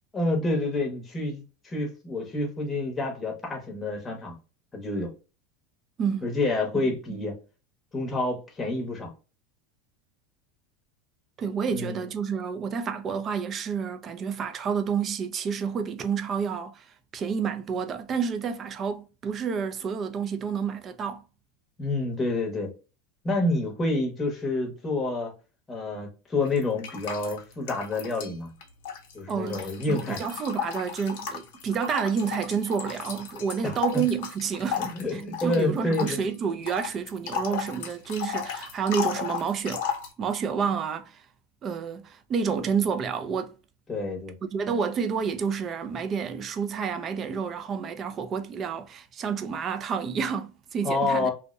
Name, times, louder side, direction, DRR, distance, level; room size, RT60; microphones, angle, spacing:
voice 1, 0.1-4.3 4.7-5.1 6.2-7.4 7.9-9.1 11.7-12.1 21.8-22.7 23.2-25.3 25.7-28.5 29.1-30.2 33.6-34.0 34.8-36.2 43.9-44.3 50.8-51.3, left 2 dB, 15° left, 0.8 m, -28 dB
voice 2, 6.0-6.3 6.7-7.2 11.4-16.9 17.1-21.2 29.3-39.8 40.2-41.2 41.6-43.5 44.5-51.3, right 6 dB, 30° right, 0.3 m, -29 dB
sound 1, 26.4-28.3 28.6-40.1, left 7 dB, 70° left, 0.7 m, -35 dB
2.5 x 2.1 x 2.3 m
supercardioid pair, 140°, 0 cm